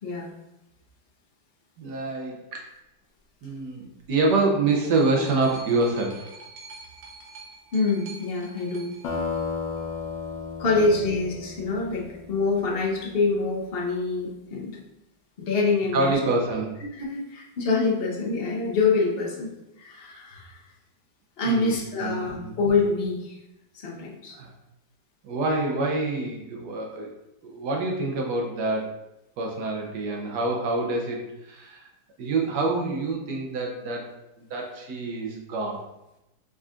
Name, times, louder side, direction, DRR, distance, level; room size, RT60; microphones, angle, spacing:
voice 1, 0.0-0.3 7.7-8.9 10.6-14.7 15.4-16.2 16.9-20.6 21.4-23.4 23.7-24.4, left 3 dB, 50° left, -2 dB, 0.7 m, -26 dB
voice 2, 1.8-2.7 3.4-6.3 10.8-10.9 15.9-16.8 21.4-22.5 24.3-24.5 25.2-27.1 27.4-29.0 29.4-31.9 32.2-34.1 34.4-35.8, right 2 dB, 70° right, 0 dB, 1.3 m, -26 dB
sound 1, 4.0-10.0 10.9-11.0, right 3 dB, 90° right, 1.5 m, -47 dB
sound 2, 9.0-13.3, left 5 dB, 85° left, 1.5 m, -34 dB
4.9 x 4.0 x 2.4 m, 0.91 s
omnidirectional pair, 2.0 m